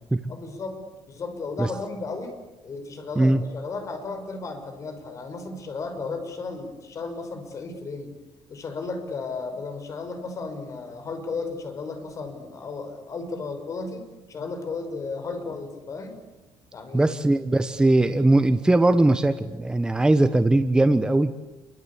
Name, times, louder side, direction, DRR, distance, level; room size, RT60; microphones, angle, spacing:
voice 1, 0.3-0.8 1.1-2.4 2.6-8.1 8.5-16.1 16.7-17.1, left 3 dB, 35° left, 7 dB, 5.6 m, -34 dB
voice 2, 16.9-21.3, right 2 dB, 10° right, 10 dB, 1.0 m, -20 dB
29.0 x 24.0 x 8.5 m, 1.1 s
cardioid pair, 140°, 9 cm